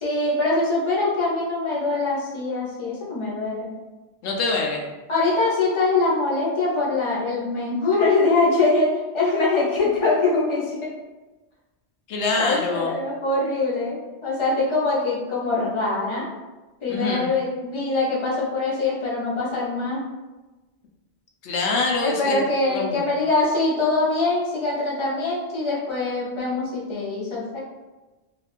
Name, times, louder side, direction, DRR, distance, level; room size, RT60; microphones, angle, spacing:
voice 1, 0.0-3.7 5.1-8.9 9.1-10.8 12.3-16.3 16.8-20.0 22.0-27.6, left 3 dB, 30° left, -7 dB, 0.8 m, -23 dB
voice 2, 4.2-4.8 12.1-12.9 16.9-17.3 21.4-22.4 22.7-23.0, left 3 dB, 90° left, 0 dB, 0.9 m, -24 dB
3.3 x 2.4 x 2.4 m, 1.2 s
omnidirectional pair, 1.1 m